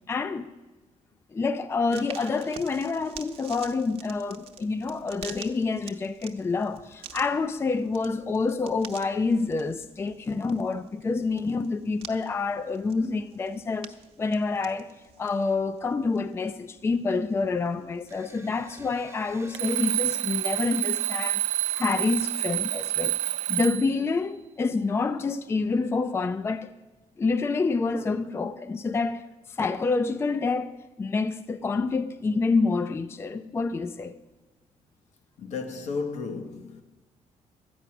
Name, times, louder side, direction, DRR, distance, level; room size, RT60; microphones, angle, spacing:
voice 1, 0.1-0.5 1.3-14.9 15.2-26.7 27.2-34.1, left 4 dB, 20° left, 0.4 m, -28 dB
sound 1, 1.9-20.2, right 8 dB, 55° right, 0.8 m, -49 dB
sound 2, 18.1-22.4, right 3 dB, 25° right, 0.7 m, -51 dB
Alarm, 19.5-24.0, right 13 dB, 70° right, 0.4 m, -28 dB
voice 2, 35.4-36.8, left 4 dB, 70° left, 1.1 m, -33 dB
12.5 x 9.3 x 5.9 m
cardioid pair, 130°, 12 cm